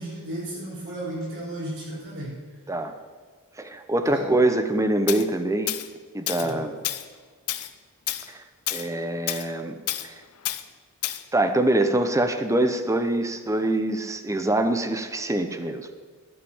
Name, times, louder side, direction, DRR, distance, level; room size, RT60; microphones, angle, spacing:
voice 1, 0.0-2.4 4.1-4.3 6.4-6.7, right 1 dB, 60° right, -5 dB, 4.7 m, -34 dB
voice 2, 3.6-5.7 6.1-6.7 8.3-8.4 8.7-10.1 11.3-15.9, right 1 dB, 15° right, 8 dB, 0.8 m, -24 dB
Tools, 5.1-5.2 5.7-5.9 6.3-6.5 6.8-7.1 7.5-7.7 8.1-8.3 8.7-8.9 9.3-9.5 9.9-10.1 10.5-10.6 11.0-11.2, left 13 dB, 80° left, 0.7 m, -29 dB
12.0 x 6.7 x 8.8 m, 1.5 s
head